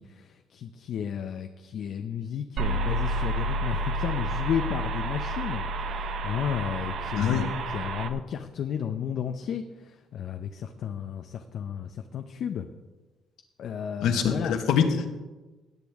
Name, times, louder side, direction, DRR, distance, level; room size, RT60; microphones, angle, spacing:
voice 1, 0.0-5.6 6.0-9.6 10.1-12.7 13.6-14.6, left 8 dB, 55° left, 7 dB, 0.6 m, -33 dB
sound 1, 2.6-8.1, right 1 dB, 55° right, 0.7 m, -30 dB
voice 2, 7.2-7.5 14.0-15.1, left 7 dB, 75° left, 6 dB, 1.3 m, -24 dB
17.0 x 8.2 x 3.5 m, 1.2 s
cardioid pair, 140°, 0 cm